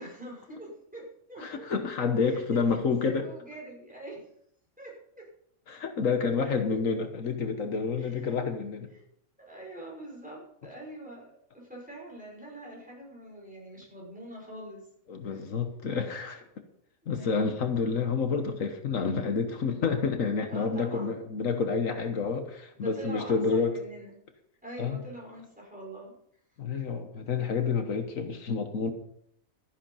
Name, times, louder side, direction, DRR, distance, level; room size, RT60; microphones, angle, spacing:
voice 1, 0.0-1.8 2.2-4.3 4.8-4.9 8.0-8.3 9.5-14.9 17.0-17.5 20.5-21.2 22.7-24.1 24.6-26.1, right 1 dB, 5° right, -3 dB, 5.8 m, -44 dB
voice 2, 1.4-3.3 5.7-8.9 15.1-16.4 17.1-23.7 24.8-25.0 26.6-28.9, left 5 dB, 75° left, 7 dB, 1.6 m, -29 dB
13.0 x 10.5 x 5.6 m, 0.70 s
omnidirectional pair, 1.4 m